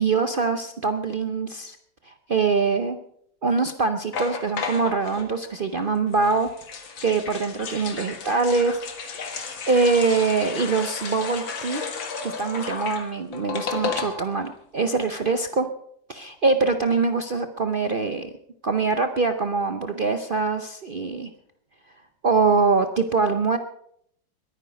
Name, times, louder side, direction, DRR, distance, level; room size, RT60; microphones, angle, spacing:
voice 1, 0.0-1.8 2.1-3.0 3.4-6.5 7.0-9.4 9.7-11.8 12.2-15.7 16.1-18.3 18.6-21.3 22.2-23.6, right 4 dB, 75° right, 8 dB, 0.4 m, -23 dB
sound 1, 4.1-5.3 6.1-14.5 14.8-14.9 15.0-15.3, left 5 dB, 85° left, 2.5 m, -33 dB
22.0 x 9.8 x 5.2 m, 0.69 s
omnidirectional pair, 2.0 m